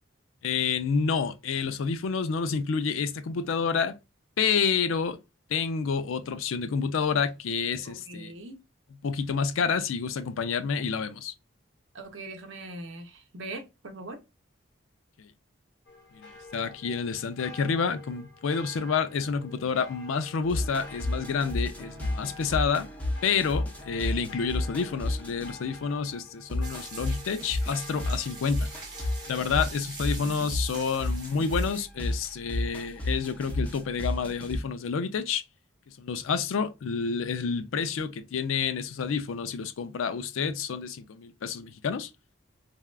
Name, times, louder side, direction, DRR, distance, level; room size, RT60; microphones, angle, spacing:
voice 1, 0.4-3.9 4.4-5.2 5.5-8.3 9.0-11.3 15.2-15.3 16.1-22.9 23.2-28.7 29.3-35.4 35.9-42.1, left 5 dB, 80° left, 0.4 m, -29 dB
voice 2, 7.9-8.6 11.9-14.2, right 2 dB, 75° right, 0.7 m, -41 dB
sound 1, 15.9-29.4, left 3 dB, 55° left, 0.8 m, -49 dB
sound 2, 20.5-25.7 26.5-34.6, left 1 dB, 5° left, 0.6 m, -32 dB
sound 3, 26.6-31.9, right 4 dB, 20° right, 0.8 m, -44 dB
3.4 x 2.2 x 2.2 m
head